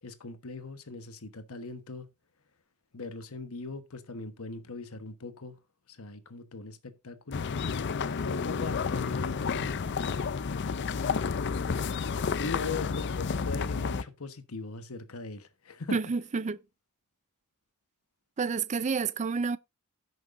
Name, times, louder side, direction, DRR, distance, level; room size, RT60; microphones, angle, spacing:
voice 1, 0.0-2.1 2.9-5.6 5.9-7.5 8.2-9.7 12.3-16.0, left 3 dB, 70° left, 1.2 m, -39 dB
sound 1, 7.3-14.0, left 5 dB, 50° left, 0.5 m, -31 dB
voice 2, 15.9-16.6 18.4-19.6, right 5 dB, 30° right, 0.4 m, -29 dB
16.0 x 6.2 x 2.6 m
head